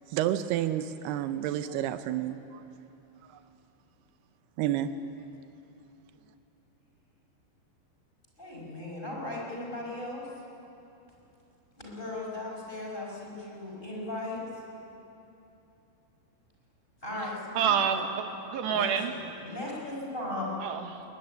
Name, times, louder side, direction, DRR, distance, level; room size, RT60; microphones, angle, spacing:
voice 1, 0.1-2.6 4.6-5.1, right 11 dB, 90° right, 10 dB, 2.3 m, -30 dB
voice 2, 8.4-10.3 11.8-14.4 17.0-18.0 18.6-20.6, left 2 dB, 10° left, -3 dB, 5.1 m, -37 dB
voice 3, 17.5-19.2 20.6-21.0, right 7 dB, 70° right, 6 dB, 3.2 m, -28 dB
22.5 x 20.0 x 9.8 m, 2.9 s
omnidirectional pair, 5.5 m